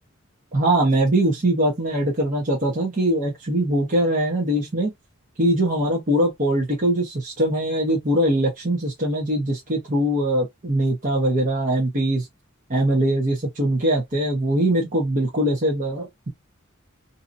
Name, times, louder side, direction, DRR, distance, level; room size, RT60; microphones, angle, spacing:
voice 1, 0.5-4.9 5.4-12.3 12.7-16.3, right 1 dB, 40° right, 1.0 m, -22 dB
2.8 x 2.8 x 2.6 m
head